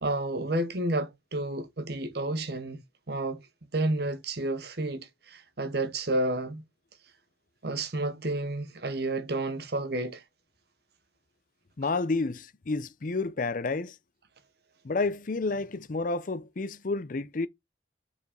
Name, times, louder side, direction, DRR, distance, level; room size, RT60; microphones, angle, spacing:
voice 1, 0.0-3.4 3.7-6.6 7.6-10.2, right 2 dB, 60° right, 1.1 m, -31 dB
voice 2, 11.8-13.9 14.8-17.5, left 3 dB, 45° left, 0.6 m, -30 dB
5.0 x 4.7 x 5.0 m
head